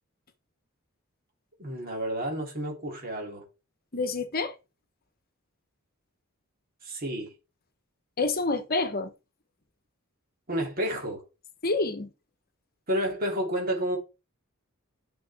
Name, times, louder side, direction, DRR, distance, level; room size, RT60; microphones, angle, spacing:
voice 1, 1.6-3.4 6.8-7.3 10.5-11.2 12.9-14.0, equal, 45° right, 3.1 m, -30 dB
voice 2, 3.9-4.5 8.2-9.1 11.6-12.1, left 3 dB, 45° left, 1.2 m, -27 dB
10.5 x 6.2 x 3.6 m
head